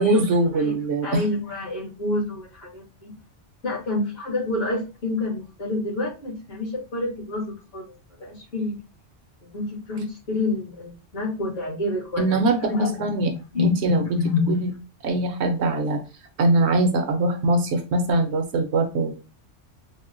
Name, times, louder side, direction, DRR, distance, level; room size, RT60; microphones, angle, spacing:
voice 1, 0.0-1.2 12.2-12.7 13.0-13.3 13.6-14.2 14.5-14.7 15.0-16.0 16.4-19.1, right 2 dB, 70° right, 6 dB, 0.8 m, -22 dB
voice 2, 1.0-3.1 3.6-7.4 7.7-7.9 8.2-8.8 9.5-13.3 13.5-14.7, left 2 dB, 65° left, -5 dB, 2.0 m, -28 dB
4.1 x 2.0 x 2.5 m, 0.31 s
omnidirectional pair, 1.2 m